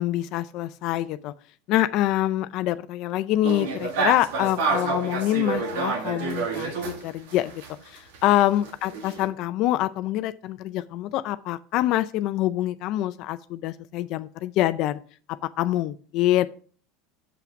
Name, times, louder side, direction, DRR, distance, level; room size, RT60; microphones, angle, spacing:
voice 1, 0.0-1.3 1.7-7.5 7.9-15.0 15.3-16.5, left 14 dB, 55° left, 12 dB, 0.4 m, -25 dB
sound 1, 3.4-7.7 8.0-9.3, right 4 dB, 85° right, 1.9 m, -29 dB
7.1 x 5.8 x 5.2 m, 0.42 s
supercardioid pair, 135°, 0 cm